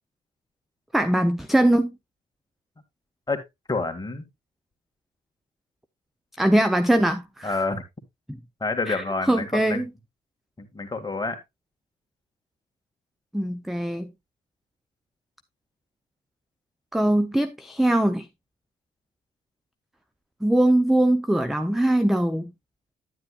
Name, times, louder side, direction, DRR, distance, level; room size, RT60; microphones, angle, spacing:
voice 1, 0.9-2.0 6.4-7.6 8.3-8.4 8.9-9.8 13.3-14.1 16.9-18.3 20.4-22.5, right 1 dB, ahead, 0.6 m, -22 dB
voice 2, 3.7-4.3 7.4-7.8 8.6-9.8 10.6-11.4, left 3 dB, 20° left, 1.8 m, -28 dB
9.9 x 9.6 x 2.3 m
cardioid pair, 90°, 20 cm